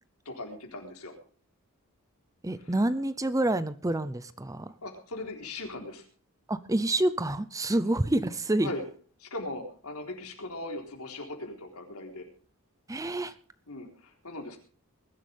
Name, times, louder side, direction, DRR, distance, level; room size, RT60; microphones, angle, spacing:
voice 1, 0.3-1.2 2.6-2.7 4.8-6.1 8.6-8.8 9.2-12.3 13.7-14.6, left 2 dB, 85° left, 2 dB, 3.9 m, -39 dB
voice 2, 2.4-4.7 6.5-8.7 12.9-13.3, right 1 dB, 15° right, 15 dB, 0.6 m, -28 dB
21.0 x 12.0 x 3.5 m, 0.40 s
head